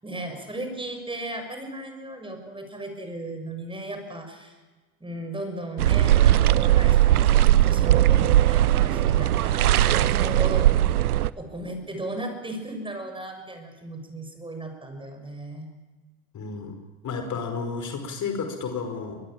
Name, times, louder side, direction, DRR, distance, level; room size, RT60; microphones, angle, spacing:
voice 1, 0.0-4.6 5.0-10.7 11.4-15.7, right 1 dB, 10° right, 5 dB, 6.5 m, -36 dB
sound 1, 5.8-11.3, right 13 dB, 85° right, 0.8 m, -19 dB
voice 2, 16.3-16.8 17.0-19.2, left 5 dB, 40° left, 6 dB, 5.0 m, -32 dB
23.5 x 21.5 x 8.9 m, 1.3 s
hypercardioid pair, 75°, 43 cm